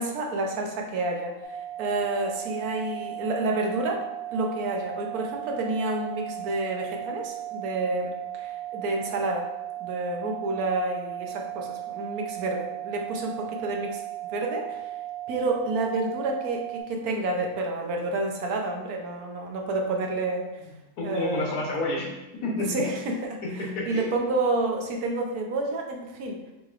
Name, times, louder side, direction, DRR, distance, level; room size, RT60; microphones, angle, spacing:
voice 1, 0.0-4.0 4.3-9.5 9.8-14.0 14.3-14.9 15.3-20.5 21.0-21.5 22.7-26.4, right 2 dB, 75° right, 1 dB, 1.2 m, -29 dB
sound 1, 1.4-16.8, right 14 dB, 45° right, 0.3 m, -36 dB
voice 2, 21.0-22.9 23.4-24.1, left 2 dB, 80° left, -2 dB, 1.5 m, -30 dB
6.4 x 3.1 x 2.5 m, 1.0 s
omnidirectional pair, 1.6 m